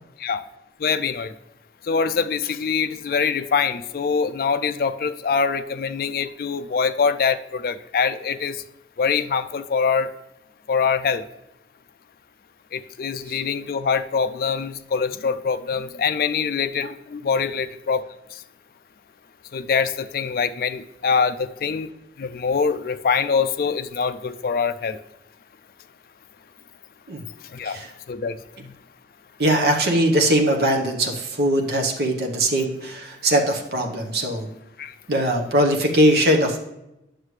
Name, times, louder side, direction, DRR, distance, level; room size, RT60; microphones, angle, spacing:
voice 1, 0.8-1.3 1.9-8.6 9.0-10.1 10.7-11.2 12.7-18.0 19.5-21.9 22.2-25.0 27.5-27.8 28.1-28.4 34.8-34.9, left 5 dB, 55° left, 10 dB, 0.4 m, -24 dB
voice 2, 29.4-34.5 35.1-36.6, right 1 dB, 65° right, 2 dB, 1.0 m, -21 dB
9.4 x 6.5 x 3.2 m, 0.91 s
head